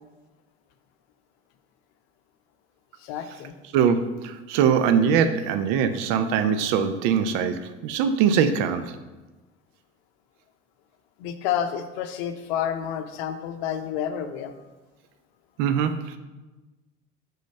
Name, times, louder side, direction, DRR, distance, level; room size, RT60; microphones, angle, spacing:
voice 1, 3.0-3.5 11.2-14.5, left 9 dB, 60° left, 8 dB, 0.7 m, -29 dB
voice 2, 3.7-8.9 15.6-16.2, right 7 dB, 55° right, 9 dB, 0.6 m, -22 dB
5.2 x 3.9 x 5.5 m, 1.1 s
figure-of-eight pair, 65°, 36 cm